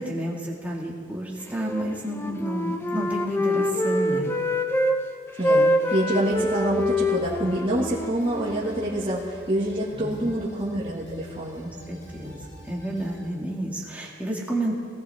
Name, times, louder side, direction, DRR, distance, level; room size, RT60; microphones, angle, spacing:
voice 1, 0.0-4.3 9.9-10.2 11.6-12.4 12.7-14.8, right 1 dB, 10° right, -4 dB, 2.2 m, -30 dB
Wind instrument woodwind instrument, 1.6-5.0 5.3-9.2, left 1 dB, 15° left, 0.8 m, -26 dB
voice 2, 5.4-11.8, right 1 dB, 30° right, -8 dB, 2.1 m, -26 dB
sound 1, 6.2-13.3, equal, 65° left, 3.9 m, -45 dB
19.0 x 18.0 x 3.6 m, 2.2 s
head